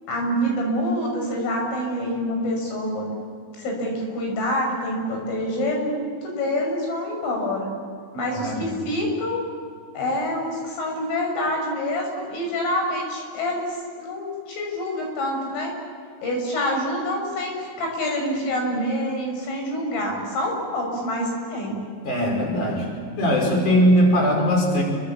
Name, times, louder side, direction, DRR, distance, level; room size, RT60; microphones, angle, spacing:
voice 1, 0.1-3.1 3.5-7.7 8.1-9.4 9.9-15.7 16.2-21.8, equal, 75° left, 1 dB, 8.7 m, -26 dB
voice 2, 8.3-8.6 22.0-22.9 23.2-24.8, equal, 40° left, 1 dB, 6.6 m, -20 dB
30.0 x 24.5 x 7.4 m, 2.3 s
omnidirectional pair, 5.8 m